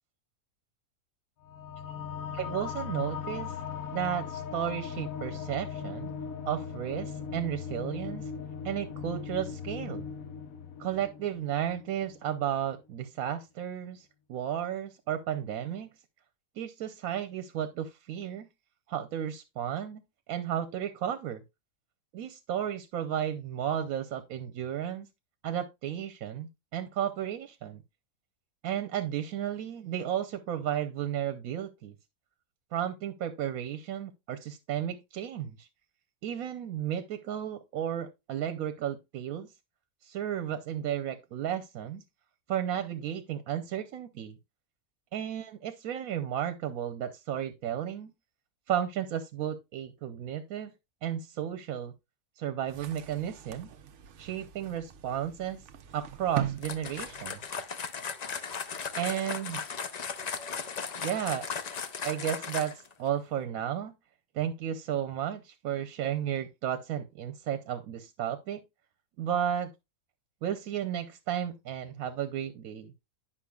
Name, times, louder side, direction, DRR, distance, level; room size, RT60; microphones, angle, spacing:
sound 1, 1.4-12.4, left 7 dB, 80° left, 1.2 m, -39 dB
voice 1, 2.3-3.6 3.9-6.1 6.4-8.3 8.6-10.0 10.8-15.9 16.6-18.5 18.9-20.0 20.3-21.4 22.1-25.1 25.4-27.8 28.6-31.9 32.7-35.7 36.2-39.5 40.0-42.0 42.5-44.4 45.1-48.1 48.7-50.7 51.0-51.9 52.4-53.7 54.2-55.6 55.9-57.4 59.0-59.6 61.0-61.4 62.0-63.9 64.3-68.6 69.2-69.7 70.4-72.9, right 10 dB, 85° right, 1.1 m, -33 dB
sound 2, 52.7-57.7, right 11 dB, 65° right, 0.9 m, -41 dB
sound 3, 56.6-62.9, left 6 dB, 55° left, 0.4 m, -37 dB
9.8 x 5.8 x 2.3 m
omnidirectional pair, 1.4 m